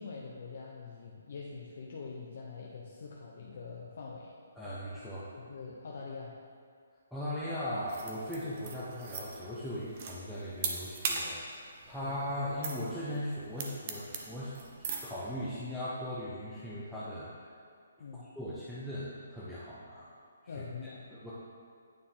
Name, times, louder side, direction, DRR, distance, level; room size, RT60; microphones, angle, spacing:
voice 1, 0.0-4.3 5.3-6.4 12.0-12.1 18.0-18.2 20.5-21.1, left 4 dB, 55° left, -3 dB, 0.7 m, -44 dB
voice 2, 4.5-5.3 7.1-14.5 15.0-17.6 18.2-20.2 20.4-21.3, left 1 dB, ahead, -12 dB, 0.7 m, -39 dB
sound 1, 7.9-15.1, right 5 dB, 35° right, 0.7 m, -39 dB
9.3 x 4.3 x 3.8 m, 2.1 s
hypercardioid pair, 165°, 0 cm